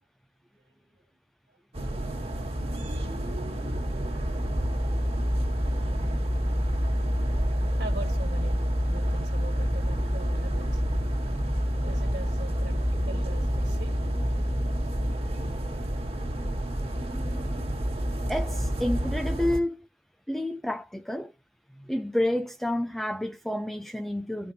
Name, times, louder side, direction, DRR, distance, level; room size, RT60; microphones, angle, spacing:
sound 1, 1.7-19.6, equal, 35° right, 1.7 m, -28 dB
voice 1, 7.7-8.6 8.9-10.8 11.8-14.0, right 2 dB, 50° right, 1.7 m, -42 dB
voice 2, 17.0-17.7 18.3-19.9 20.3-21.3 21.8-24.5, left 1 dB, ahead, 0.4 m, -30 dB
13.5 x 5.1 x 2.7 m
head